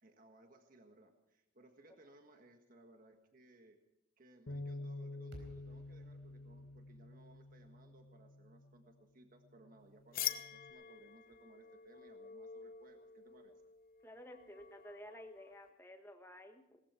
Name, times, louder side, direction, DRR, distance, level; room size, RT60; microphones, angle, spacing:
voice 1, 0.0-3.8 4.2-13.5, right 2 dB, 45° right, 5 dB, 1.6 m, -63 dB
Bass guitar, 4.5-8.9 9.5-10.7, left 2 dB, 70° left, 1.4 m, -49 dB
sound 1, 5.3-9.6, equal, 75° right, 4.1 m, -60 dB
sound 2, 10.1-15.7, left 11 dB, 50° left, 0.8 m, -46 dB
voice 2, 14.0-16.8, left 1 dB, 15° left, 5 dB, 1.6 m, -53 dB
19.0 x 14.5 x 4.5 m, 0.92 s
head